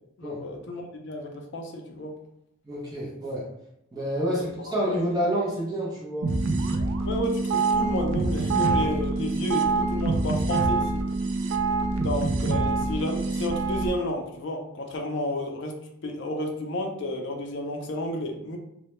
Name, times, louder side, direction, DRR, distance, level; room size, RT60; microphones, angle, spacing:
voice 1, 0.2-2.1 4.2-4.7 7.1-11.0 12.0-15.7 16.0-18.6, left 1 dB, 60° left, 2 dB, 0.4 m, -31 dB
voice 2, 2.7-3.4 3.9-6.3 11.9-12.1, equal, 20° right, -6 dB, 0.5 m, -28 dB
sound 1, 6.2-13.9, right 3 dB, 80° right, 0.3 m, -25 dB
2.1 x 2.1 x 2.9 m, 0.79 s
head